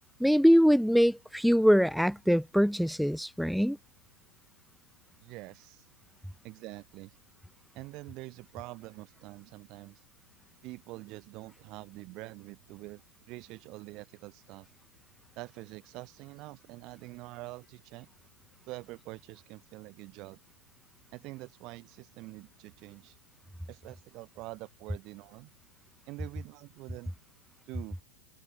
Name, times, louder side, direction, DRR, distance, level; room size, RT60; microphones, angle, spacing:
voice 1, 0.2-3.8, equal, ahead, 2.3 m, -23 dB
voice 2, 5.2-5.8 6.4-7.1 7.7-10.0 10.6-13.0 13.3-14.7 15.4-18.1 18.7-20.4 21.1-23.2 23.7-25.5 26.1-27.1 27.7-28.0, right 21 dB, 40° right, 7.7 m, -45 dB
supercardioid pair, 145°, 0 cm